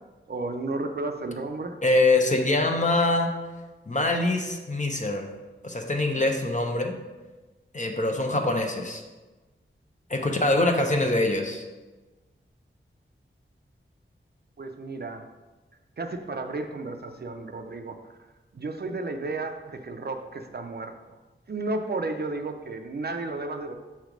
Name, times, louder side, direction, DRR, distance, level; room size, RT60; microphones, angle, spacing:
voice 1, 0.3-1.8 6.1-6.2 10.2-10.5 14.6-15.3 16.0-18.0 18.5-21.2 21.5-23.7, right 2 dB, 50° right, 5 dB, 0.5 m, -33 dB
voice 2, 1.8-3.3 3.9-5.3 5.6-6.9 7.7-9.0 10.1-11.6, left 2 dB, 35° left, 3 dB, 0.7 m, -24 dB
7.1 x 3.1 x 5.1 m, 1.2 s
wide cardioid pair, 90°, 21 cm